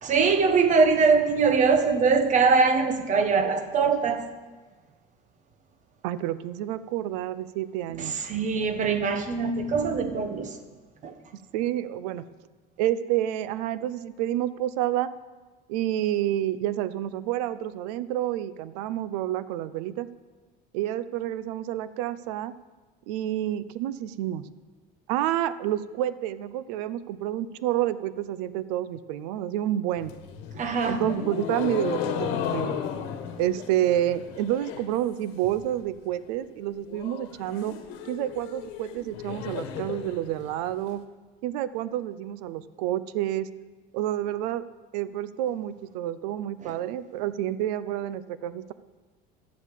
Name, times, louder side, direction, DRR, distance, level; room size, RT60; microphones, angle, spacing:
voice 1, 0.0-4.3 8.0-10.5 11.0-11.1 30.5-31.0 46.6-46.7, right 5 dB, 40° right, 8 dB, 1.2 m, -22 dB
voice 2, 6.0-8.1 11.5-12.3 12.8-15.1 15.7-20.1 20.7-22.6 23.1-24.5 25.1-30.1 30.9-32.8 33.4-37.8 38.0-41.0 41.4-43.5 43.9-44.6 44.9-48.7, right 12 dB, 85° right, 16 dB, 0.6 m, -29 dB
sound 1, 30.0-35.0 35.3-35.8 36.1-36.2 36.5-36.6 36.9-40.9, left 8 dB, 75° left, 1.3 m, -34 dB
11.5 x 8.3 x 7.4 m, 1.3 s
cardioid pair, 125°, 20 cm